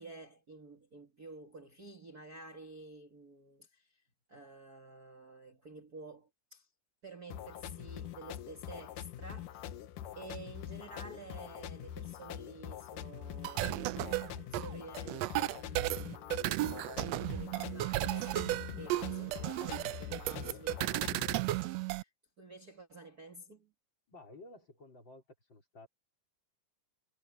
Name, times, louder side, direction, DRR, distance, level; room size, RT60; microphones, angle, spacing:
voice 1, 0.0-4.0 4.3-6.7 7.0-9.8 10.2-14.0 14.5-22.1 22.4-23.7, right 3 dB, 30° right, 2.4 m, -51 dB
sound 1, 7.3-21.4, left 11 dB, 85° left, 2.6 m, -44 dB
sound 2, 13.3-22.0, right 16 dB, 85° right, 1.5 m, -34 dB
voice 2, 24.1-25.2 25.5-25.9, left 2 dB, 35° left, 4.8 m, -53 dB
omnidirectional pair, 3.6 m